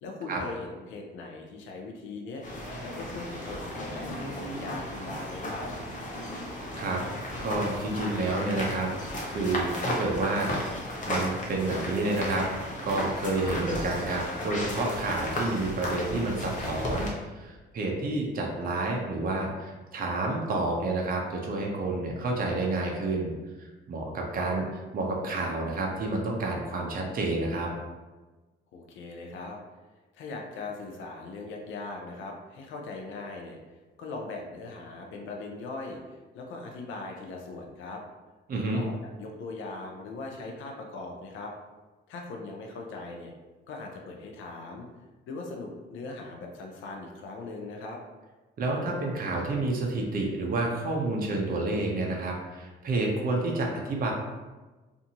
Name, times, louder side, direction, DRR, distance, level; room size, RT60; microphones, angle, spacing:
voice 1, 0.0-2.4 2.8-5.7 28.7-29.6 30.1-33.6 34.0-38.0 38.7-41.5 42.1-43.3 43.7-44.9 45.3-48.0, left 3 dB, 80° left, 1 dB, 0.5 m, -40 dB
sound 1, 2.4-17.1, left 1 dB, 40° left, 0.7 m, -34 dB
voice 2, 7.4-8.9 9.3-10.5 11.1-12.5 12.8-23.3 23.6-24.7 24.9-27.7 38.5-38.8 48.6-54.1, right 2 dB, 45° right, 0 dB, 0.6 m, -29 dB
2.6 x 2.5 x 2.8 m, 1.2 s
cardioid pair, 90°, 20 cm